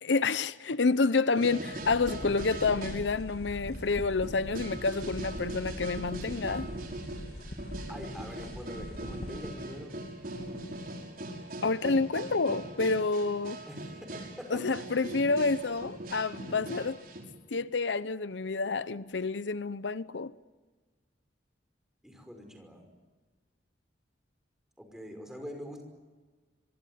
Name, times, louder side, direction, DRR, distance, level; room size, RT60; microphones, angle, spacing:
voice 1, 0.0-6.7 11.6-13.6 14.5-17.0 17.5-20.3, left 4 dB, 85° left, 0.8 m, -29 dB
sound 1, 1.3-3.0 3.3-4.0 4.2-17.2, right 1 dB, 50° right, 5.9 m, -41 dB
sound 2, 1.8-9.5, equal, 60° left, 2.4 m, -43 dB
voice 2, 7.9-10.0 13.7-14.8 22.0-22.9 24.8-25.8, equal, 5° right, 5.5 m, -44 dB
25.0 x 23.5 x 9.5 m
head